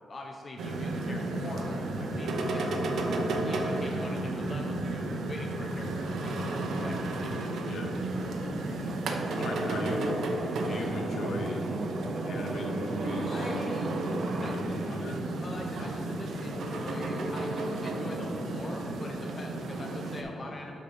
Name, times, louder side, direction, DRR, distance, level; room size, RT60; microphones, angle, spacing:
voice 1, 0.1-2.9 3.4-7.0 13.3-13.9 14.3-14.6 15.4-20.8, left 2 dB, 35° left, 0 dB, 0.6 m, -42 dB
sound 1, 0.6-20.2, right 2 dB, 75° right, 0.8 m, -32 dB
voice 2, 7.6-8.0 9.0-10.2 10.6-11.7 12.2-14.1 14.4-15.2, left 1 dB, 65° left, 1 dB, 1.0 m, -38 dB
sound 2, 8.8-14.6, right 4 dB, 45° right, 0.3 m, -40 dB
11.5 x 4.4 x 3.4 m, 2.5 s
cardioid pair, 115°, 0 cm